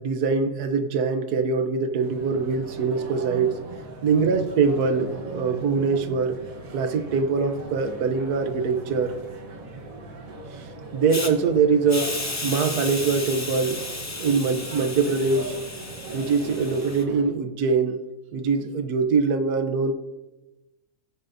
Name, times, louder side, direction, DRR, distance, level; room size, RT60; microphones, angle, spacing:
voice 1, 0.0-3.6 4.0-6.4 6.7-9.1 10.6-10.7 10.9-12.1 12.4-13.8 14.2-15.6 16.1-18.0 18.3-19.9, right 5 dB, 85° right, 8 dB, 1.3 m, -23 dB
sound 1, 2.0-17.2, right 3 dB, 65° right, 1.6 m, -39 dB
Hiss, 11.1-11.3 11.9-17.0, left 2 dB, 25° left, 0.4 m, -34 dB
16.0 x 7.6 x 2.6 m, 1.1 s
omnidirectional pair, 1.6 m